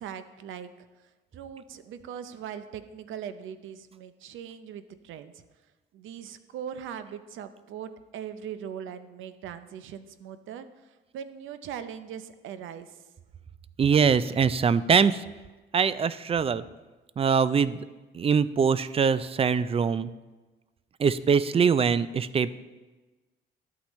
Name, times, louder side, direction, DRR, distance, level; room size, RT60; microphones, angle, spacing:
voice 1, 0.0-5.4 5.9-13.0, right 8 dB, 80° right, 11 dB, 0.6 m, -40 dB
voice 2, 13.8-15.2 15.7-16.6 17.2-17.8 18.1-20.1 21.0-22.5, right 6 dB, 30° right, 16 dB, 0.3 m, -23 dB
11.5 x 8.4 x 3.1 m, 1.2 s
cardioid pair, 90°, 20 cm